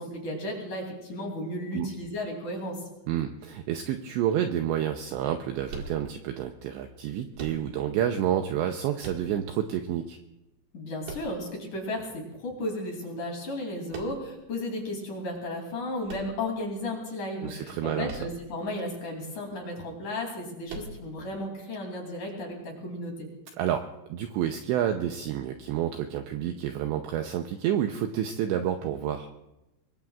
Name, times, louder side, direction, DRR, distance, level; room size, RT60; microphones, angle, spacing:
voice 1, 0.0-2.8 10.7-23.3, left 1 dB, 45° left, 0 dB, 3.9 m, -34 dB
voice 2, 3.1-10.2 17.4-18.2 23.6-23.8 24.1-29.3, right 10 dB, 85° right, 5 dB, 2.6 m, -29 dB
sound 1, 5.7-6.5 7.3-8.0 9.0-9.7 11.0-11.8 13.9-14.5 16.0-16.9 18.0-18.6 18.9-19.0 20.7-21.3, right 3 dB, 55° right, 2.7 m, -42 dB
25.0 x 21.5 x 2.4 m, 0.93 s
omnidirectional pair, 5.9 m